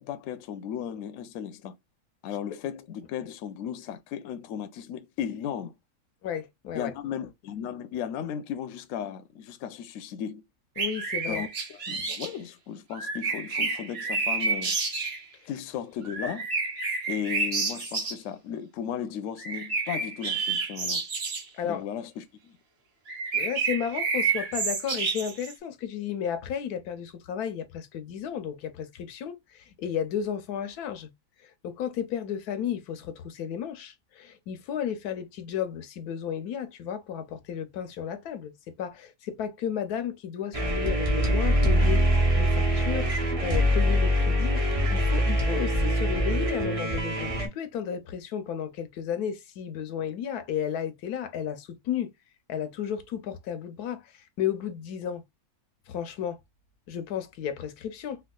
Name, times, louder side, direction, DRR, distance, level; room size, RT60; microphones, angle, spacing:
voice 1, 0.0-1.7 2.2-5.7 6.7-10.4 11.3-14.8 15.5-16.5 17.1-21.0 21.6-22.6, left 8 dB, 70° left, 0.9 m, -35 dB
voice 2, 6.2-6.9 10.8-11.4 11.9-12.0 21.5-21.8 23.3-31.1 31.4-38.5 38.8-43.1 43.4-44.6 44.9-52.1 52.5-55.2 55.9-56.4 56.9-58.2, left 8 dB, 90° left, 1.2 m, -33 dB
sound 1, 10.8-12.3 12.9-15.2 16.0-18.1 19.4-21.4 23.1-25.5, right 4 dB, 45° right, 1.1 m, -29 dB
sound 2, 40.5-47.5, equal, 30° right, 0.7 m, -24 dB
4.4 x 2.3 x 2.2 m
omnidirectional pair, 1.6 m